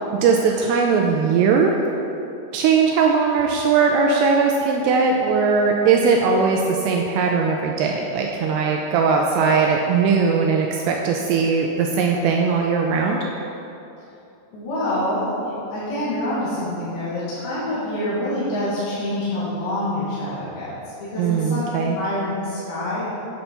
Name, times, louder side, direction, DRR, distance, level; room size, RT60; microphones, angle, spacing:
voice 1, 0.2-1.8 2.5-13.2 21.2-22.0, right 5 dB, 80° right, 1 dB, 2.5 m, -19 dB
voice 2, 14.5-20.7 21.1-23.1, left 1 dB, 65° left, -10 dB, 3.4 m, -26 dB
8.3 x 7.8 x 4.4 m, 2.8 s
omnidirectional pair, 5.1 m